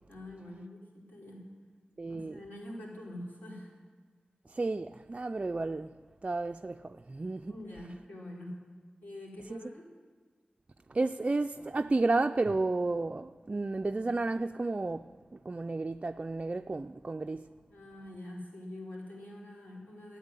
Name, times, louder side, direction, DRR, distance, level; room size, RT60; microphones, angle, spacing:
voice 1, 0.1-1.4 2.1-3.7 7.5-8.5 9.0-9.8 17.7-20.2, left 1 dB, 65° left, 4.6 m, -45 dB
voice 2, 2.0-2.4 4.5-5.9 6.2-7.6 9.5-9.7 10.9-17.5, right 3 dB, 35° right, 0.3 m, -32 dB
13.5 x 8.3 x 9.8 m
wide cardioid pair, 90°, 3 cm